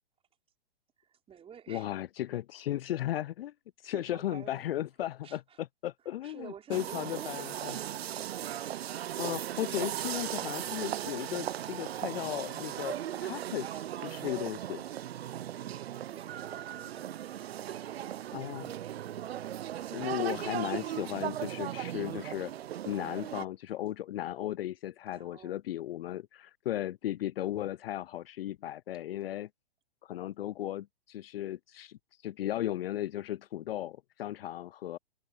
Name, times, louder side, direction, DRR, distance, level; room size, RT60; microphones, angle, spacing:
voice 1, 1.0-1.9 2.3-2.4 3.9-4.7 5.2-5.6 6.0-8.0 16.1-17.1 17.7-18.7 19.8-20.5 25.1-25.6, right 8 dB, 20° right, 4.9 m, -51 dB
voice 2, 1.7-3.5 3.8-7.7 9.2-14.8 18.3-18.7 19.9-22.5 22.9-29.5 30.0-35.0, left 13 dB, 65° left, 0.5 m, -36 dB
sound 1, 6.7-23.5, right 11 dB, 75° right, 0.6 m, -37 dB
hypercardioid pair, 125°, 31 cm